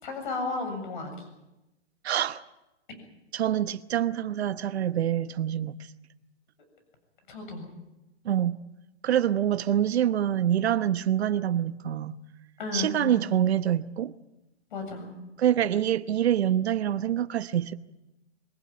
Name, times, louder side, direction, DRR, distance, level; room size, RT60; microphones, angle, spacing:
voice 1, 0.0-1.2 7.3-7.6 12.6-13.2 14.7-15.1, left 3 dB, 45° left, 7.6 m, -33 dB
voice 2, 2.0-2.4 3.3-5.8 8.2-8.6 9.0-12.2 12.7-14.1 15.4-17.7, right 10 dB, 65° right, 1.0 m, -26 dB
24.0 x 18.0 x 8.8 m
hypercardioid pair, 170°, 34 cm